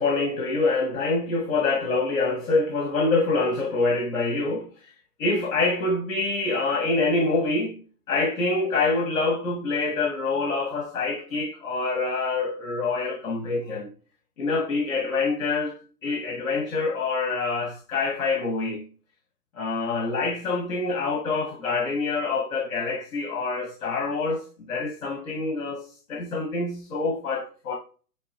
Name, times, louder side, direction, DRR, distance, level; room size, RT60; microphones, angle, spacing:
voice 1, 0.0-4.9 5.2-7.8 8.1-13.9 14.4-18.8 19.6-27.7, left 3 dB, 60° left, 2.0 m, -26 dB
8.8 x 3.4 x 3.3 m
hypercardioid pair, 155°, 45 cm